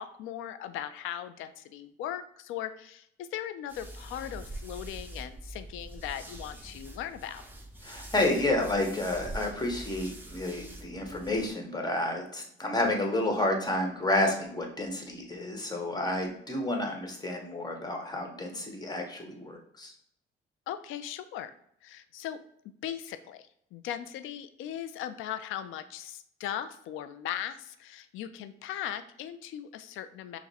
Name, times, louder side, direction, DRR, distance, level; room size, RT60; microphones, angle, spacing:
voice 1, 0.0-7.4 20.7-21.5 21.8-22.4 22.8-30.4, left 10 dB, 90° left, 11 dB, 0.4 m, -38 dB
sound 1, 3.7-11.5, right 1 dB, 10° right, 0.9 m, -44 dB
voice 2, 7.8-19.9, left 1 dB, 20° left, 2 dB, 1.2 m, -30 dB
5.8 x 2.1 x 4.1 m, 0.67 s
cardioid pair, 90°, 20 cm